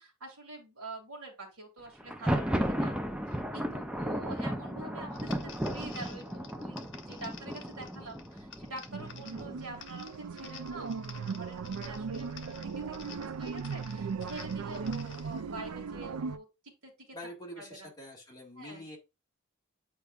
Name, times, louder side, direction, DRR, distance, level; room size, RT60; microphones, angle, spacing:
voice 1, 0.0-3.0 3.3-12.6 12.9-16.5 16.8-16.9 17.6-17.9 18.6-18.8, right 2 dB, 70° right, 0 dB, 2.5 m, -46 dB
Thunder, 2.0-9.8, equal, 5° right, 0.5 m, -34 dB
sound 1, 5.1-15.4, left 7 dB, 55° left, 0.9 m, -52 dB
sound 2, 8.9-16.4, right 5 dB, 90° right, 0.5 m, -38 dB
voice 2, 17.1-19.0, left 1 dB, 20° left, -2 dB, 1.9 m, -45 dB
8.5 x 4.6 x 2.5 m, 0.25 s
head